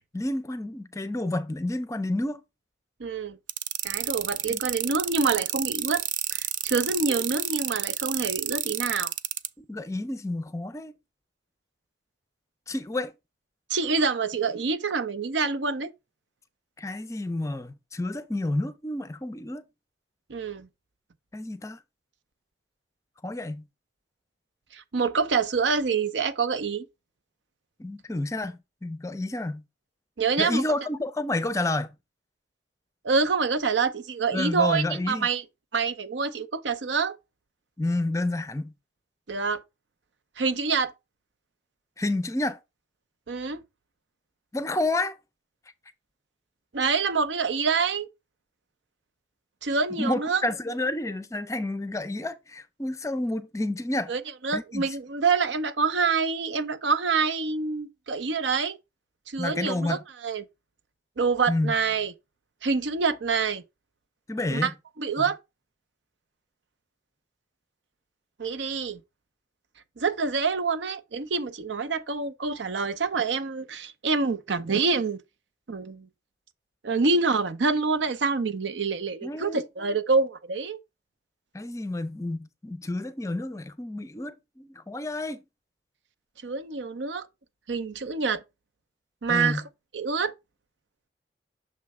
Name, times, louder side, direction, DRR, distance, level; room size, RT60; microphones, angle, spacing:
voice 1, 0.1-2.4 4.5-4.6 9.6-10.9 12.7-13.1 16.8-19.6 21.3-21.8 23.2-23.6 27.8-29.6 30.4-31.9 34.3-35.3 37.8-38.7 42.0-42.6 44.5-45.2 50.0-54.1 54.5-54.8 59.4-60.0 61.5-61.7 64.3-64.7 79.2-79.7 81.5-85.4 89.3-89.6, left 2 dB, 15° left, 0.4 m, -30 dB
voice 2, 3.0-3.4 3.8-6.0 6.3-9.1 13.7-15.9 20.3-20.7 24.7-26.9 30.2-30.6 33.0-35.4 35.7-37.2 39.3-39.6 40.4-40.9 43.3-43.6 46.7-48.1 49.6-50.4 54.1-58.8 59.3-60.5 61.2-62.1 62.6-63.6 64.5-64.7 65.0-65.4 68.4-69.0 70.0-75.2 75.7-76.1 76.8-80.8 86.4-87.3 87.7-88.4 89.2-89.6 89.9-90.3, right 4 dB, 85° right, 0.7 m, -26 dB
sound 1, 3.5-9.5, right 13 dB, 45° right, 0.4 m, -29 dB
6.7 x 3.2 x 4.7 m
head